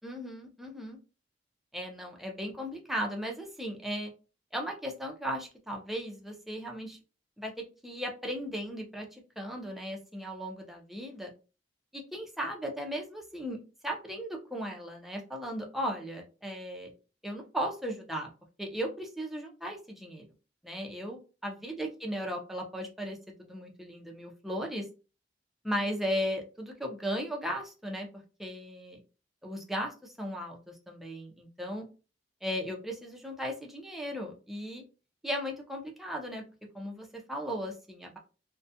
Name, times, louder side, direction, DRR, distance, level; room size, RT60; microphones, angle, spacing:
voice 1, 0.0-1.0 1.7-4.1 4.5-7.0 7.4-11.3 11.9-13.6 13.8-16.9 17.2-18.3 18.6-20.3 20.6-24.9 25.6-28.1 28.4-29.0 29.4-30.6 30.9-31.9 32.4-34.8 35.2-36.4 36.7-38.2, equal, ahead, 1 dB, 0.5 m, -36 dB
2.3 x 2.1 x 2.6 m, 0.32 s
head